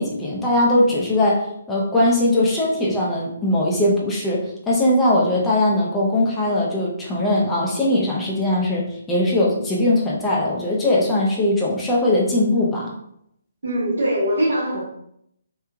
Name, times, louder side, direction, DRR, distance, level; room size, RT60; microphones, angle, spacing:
voice 1, 0.0-12.9, left 1 dB, 10° left, -5 dB, 0.6 m, -20 dB
voice 2, 13.6-14.8, right 1 dB, 70° right, -3 dB, 1.0 m, -21 dB
3.1 x 2.2 x 2.2 m, 0.73 s
figure-of-eight pair, 140°, 0 cm